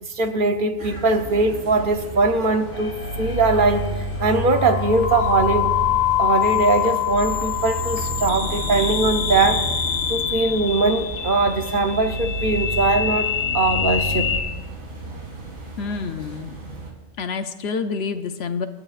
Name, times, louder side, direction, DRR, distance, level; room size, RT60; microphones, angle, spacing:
voice 1, 0.0-5.7 6.2-9.6 10.1-14.3, right 3 dB, 50° right, 7 dB, 0.9 m, -21 dB
sound 1, 0.8-16.9, right 3 dB, 85° right, 2.6 m, -37 dB
sound 2, 2.7-14.4, left 7 dB, 85° left, 1.4 m, -25 dB
voice 2, 15.8-16.6 17.2-18.7, left 5 dB, 65° left, 9 dB, 0.9 m, -28 dB
29.0 x 9.8 x 2.4 m, 1.2 s
omnidirectional pair, 1.2 m